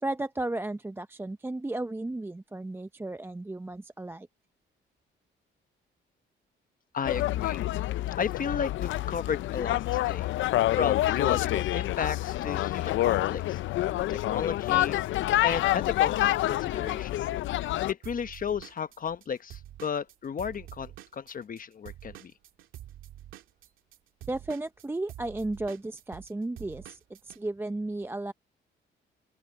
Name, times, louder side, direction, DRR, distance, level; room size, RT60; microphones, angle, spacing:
voice 1, 0.0-4.3 24.3-28.3, right 2 dB, 10° right, 0.6 m, -34 dB
voice 2, 6.9-7.7 8.2-10.3 10.7-13.6 14.1-15.0 15.4-17.2 17.9-22.3, left 7 dB, 45° left, 1.1 m, -33 dB
sound 1, 7.0-17.9, left 15 dB, 75° left, 0.5 m, -27 dB
Drum kit / Drum, 18.0-21.6 21.9-27.4, right 13 dB, 85° right, 2.4 m, -47 dB
open air
cardioid pair, 90°, 20 cm